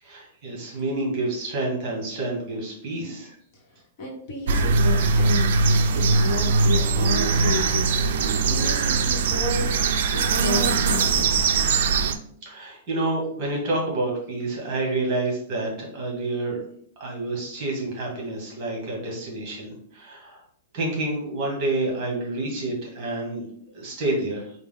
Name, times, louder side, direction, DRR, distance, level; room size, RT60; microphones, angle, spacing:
voice 1, 0.0-3.3 12.4-16.6 17.0-20.4 20.7-23.4 23.7-24.5, right 2 dB, 30° right, -2 dB, 1.4 m, -28 dB
voice 2, 3.5-5.7 5.9-9.7 10.1-11.7, left 1 dB, 40° left, -1 dB, 1.1 m, -32 dB
sound 1, 4.5-12.1, right 4 dB, 60° right, 0.4 m, -21 dB
4.4 x 2.2 x 3.6 m, 0.65 s
supercardioid pair, 170°, 0 cm